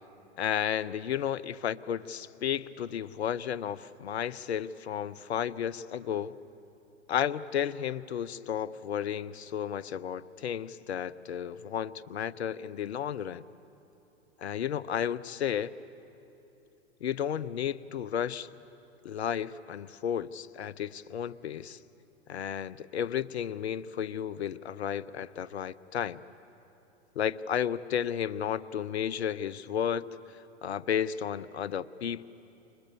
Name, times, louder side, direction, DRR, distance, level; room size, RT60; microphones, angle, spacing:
voice 1, 0.4-6.4 7.1-13.4 14.4-15.7 17.0-18.5 19.0-21.8 22.3-26.2 27.2-30.1 30.6-32.2, left 9 dB, 75° left, 18 dB, 0.8 m, -33 dB
29.5 x 26.0 x 7.0 m, 2.9 s
hypercardioid pair, 100°, 33 cm